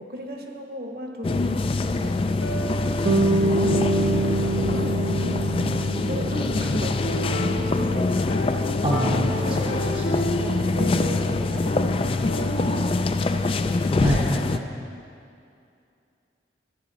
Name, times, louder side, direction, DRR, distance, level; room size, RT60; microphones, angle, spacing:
voice 1, 0.0-3.8 4.7-8.8 9.3-10.1 10.4-13.6, equal, 55° right, 1 dB, 1.2 m, -37 dB
sound 1, 1.2-14.6, left 3 dB, 30° left, 0.3 m, -24 dB
sound 2, 2.3-13.0, right 1 dB, 70° left, 0.9 m, -33 dB
Bass guitar, 3.0-7.3, right 2 dB, 80° right, 0.9 m, -26 dB
voice 2, 8.8-10.0 14.0-14.6, right 1 dB, 30° right, -3 dB, 0.7 m, -26 dB
13.5 x 10.0 x 4.1 m, 2.5 s
head